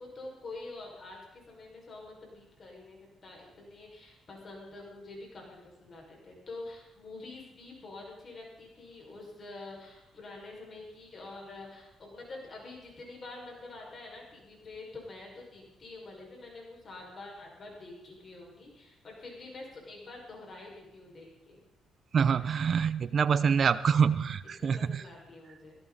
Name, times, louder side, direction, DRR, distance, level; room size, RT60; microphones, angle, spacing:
voice 1, 0.0-21.6 22.3-22.5 24.6-25.8, left 2 dB, 40° left, -1 dB, 5.7 m, -46 dB
voice 2, 22.1-25.0, right 6 dB, 50° right, 15 dB, 0.7 m, -26 dB
17.5 x 17.0 x 4.2 m, 1.0 s
cardioid pair, 90°, 0 cm